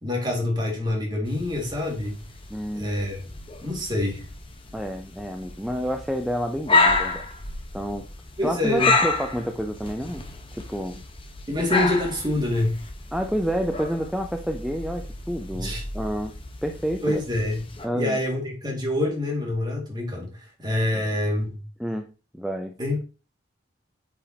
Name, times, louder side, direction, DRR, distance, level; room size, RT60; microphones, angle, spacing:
voice 1, 0.0-2.2 2.7-3.2 3.6-4.2 8.4-8.9 11.5-12.8 15.5-15.8 17.0-17.6 17.9-20.3 20.6-21.6 22.8-23.0, left 1 dB, 25° right, 0 dB, 2.1 m, -26 dB
sound 1, 1.3-17.9, left 3 dB, 30° left, 1.0 m, -30 dB
voice 2, 2.5-3.0 4.7-7.3 7.7-8.1 8.4-10.2 10.5-11.0 13.1-16.3 16.6-17.2 17.8-18.2 20.9-21.1 21.8-22.1 22.3-22.7, equal, ahead, 4 dB, 0.5 m, -29 dB
8.4 x 4.9 x 2.8 m, 0.33 s
head